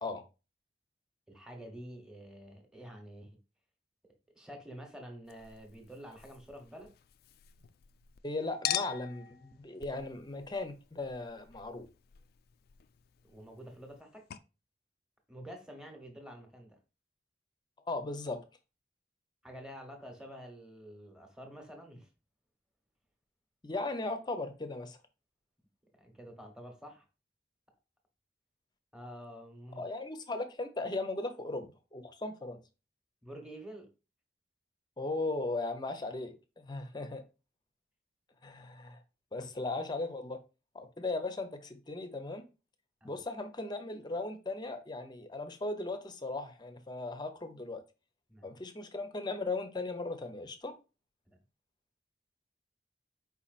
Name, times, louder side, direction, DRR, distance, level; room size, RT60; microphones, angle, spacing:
voice 1, 1.3-3.3 4.3-6.9 13.2-14.2 15.3-16.8 19.4-22.1 26.0-27.1 28.9-29.8 33.2-33.9 43.0-43.2 48.3-48.6 51.3-51.4, equal, 5° right, 1.0 m, -48 dB
Chink clink, 5.3-8.2 8.6-14.0 14.3-14.4, left 11 dB, 60° left, 0.3 m, -43 dB
voice 2, 8.2-11.9 17.9-18.4 23.6-25.0 29.8-32.6 35.0-37.2 38.4-39.0 39.3-40.4 40.7-42.4 43.0-47.8 48.4-50.7, left 2 dB, 25° left, 0.6 m, -37 dB
4.8 x 4.2 x 2.4 m
head